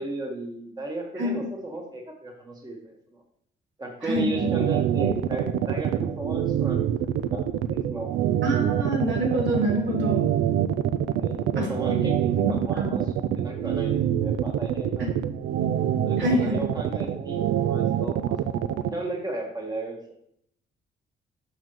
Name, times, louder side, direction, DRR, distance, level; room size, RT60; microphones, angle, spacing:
voice 1, 0.0-2.8 3.8-8.1 11.2-15.2 16.0-18.4 18.9-20.1, right 1 dB, 20° right, 0 dB, 1.4 m, -34 dB
voice 2, 4.0-4.5 8.4-10.3 11.6-11.7 12.4-12.9 15.0-15.1 16.2-16.6, equal, 65° right, -1 dB, 2.3 m, -26 dB
sound 1, 4.2-18.9, right 10 dB, 80° right, 0.4 m, -25 dB
7.2 x 6.0 x 3.1 m, 0.69 s
cardioid pair, 90°, 20 cm